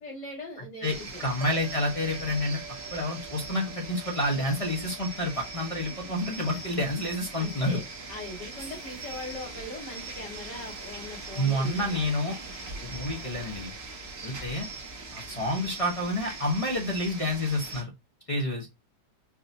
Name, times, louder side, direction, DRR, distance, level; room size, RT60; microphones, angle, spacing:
voice 1, 0.0-1.2 7.3-7.8 8.1-12.1, left 2 dB, 70° left, -7 dB, 2.2 m, -40 dB
voice 2, 0.8-2.6 2.9-7.8 11.3-12.3 12.8-13.7 14.2-14.7 15.1-17.9 18.3-18.7, left 1 dB, 25° left, 0 dB, 0.8 m, -29 dB
sound 1, 0.8-17.8, right 3 dB, 45° right, 1.0 m, -41 dB
sound 2, 1.4-13.9, right 9 dB, 70° right, 0.6 m, -51 dB
4.8 x 2.6 x 2.7 m, 0.21 s
omnidirectional pair, 1.9 m